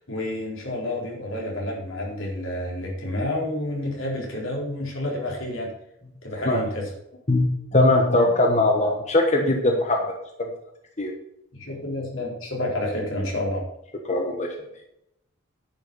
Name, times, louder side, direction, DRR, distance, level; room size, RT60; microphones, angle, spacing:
voice 1, 0.0-5.7 6.2-6.9 11.5-13.6, left 1 dB, 85° left, -2 dB, 4.2 m, -29 dB
voice 2, 7.3-10.0 10.4-10.5 11.0-11.1 14.0-14.5, left 2 dB, 35° left, 2 dB, 1.2 m, -20 dB
10.0 x 6.3 x 7.0 m, 0.81 s
head